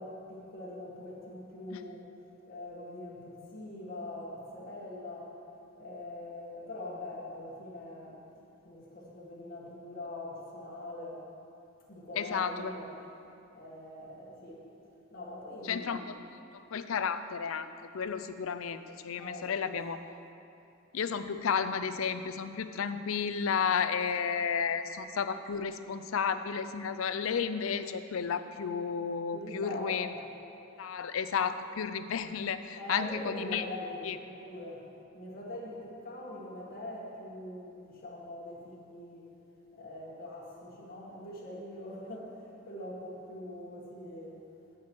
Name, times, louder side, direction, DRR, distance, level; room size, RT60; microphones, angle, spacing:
voice 1, 0.0-2.1 2.5-5.4 5.8-8.2 8.6-11.2 11.9-12.9 13.5-14.6 15.1-16.0 19.2-19.8 29.3-30.1 32.8-34.9 35.1-39.3 39.7-44.4, left 1 dB, 45° left, -5 dB, 1.7 m, -43 dB
voice 2, 12.2-12.7 15.6-16.2 16.5-17.7 17.9-20.0 20.9-30.1 30.8-33.6 34.0-34.2, left 6 dB, 80° left, 11 dB, 0.5 m, -32 dB
14.5 x 6.1 x 4.6 m, 2.9 s
head